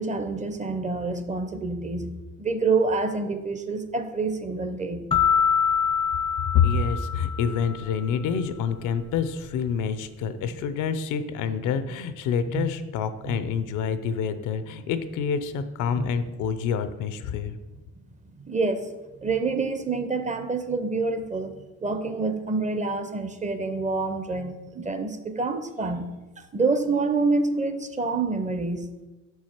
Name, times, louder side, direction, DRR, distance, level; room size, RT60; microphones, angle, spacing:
voice 1, 0.0-5.1 11.7-11.8 12.5-12.7 13.3-13.4 16.0-16.1 18.4-18.9 19.2-21.6 21.8-26.1 26.5-28.9, right 3 dB, 25° right, 8 dB, 0.6 m, -27 dB
sound 1, 5.1-7.9, left 7 dB, 20° left, 0.4 m, -24 dB
voice 2, 6.5-17.6, left 7 dB, 85° left, 11 dB, 0.6 m, -27 dB
5.7 x 4.7 x 4.3 m, 1.1 s
cardioid pair, 90°, 30 cm